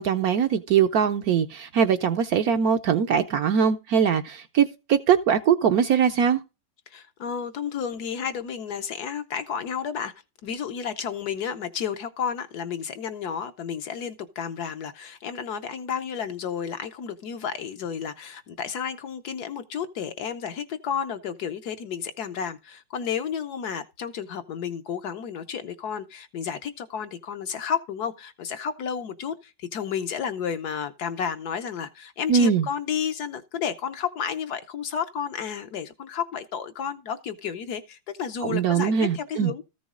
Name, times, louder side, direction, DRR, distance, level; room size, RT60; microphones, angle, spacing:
voice 1, 0.0-6.4 32.3-32.7 38.4-39.5, right 7 dB, 65° right, 1.0 m, -22 dB
voice 2, 6.9-10.1 10.4-39.6, left 7 dB, 65° left, 1.2 m, -32 dB
14.0 x 6.1 x 3.7 m
omnidirectional pair, 2.0 m